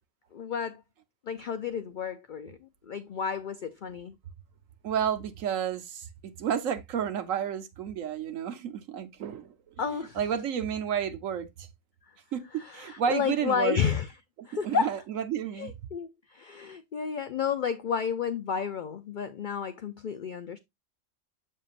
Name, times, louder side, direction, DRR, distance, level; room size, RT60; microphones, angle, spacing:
voice 1, 0.3-0.8 1.3-4.2 9.8-10.2 12.6-14.1 14.5-14.9 15.5-20.6, left 7 dB, 70° left, 0.4 m, -31 dB
voice 2, 4.8-11.7 12.3-13.8 14.4-15.7, right 8 dB, 75° right, 1.2 m, -31 dB
7.3 x 6.4 x 2.4 m
omnidirectional pair, 1.4 m